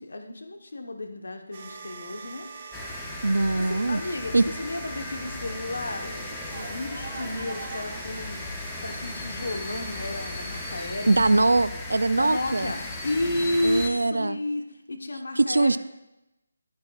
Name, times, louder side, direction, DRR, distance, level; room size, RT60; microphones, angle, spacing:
voice 1, 0.0-2.5 3.5-8.4 8.8-11.1 11.4-11.6 12.1-15.8, left 1 dB, 75° left, 4 dB, 1.1 m, -32 dB
sound 1, 1.5-10.8, right 4 dB, 30° right, 1.2 m, -42 dB
sound 2, 2.7-13.9, left 2 dB, 10° left, 0.7 m, -37 dB
voice 2, 3.2-4.0 4.3-4.5 11.1-12.7 13.6-14.4 15.4-15.8, right 2 dB, 90° right, 14 dB, 0.4 m, -22 dB
11.0 x 9.5 x 2.4 m, 0.93 s
figure-of-eight pair, 165°, 0 cm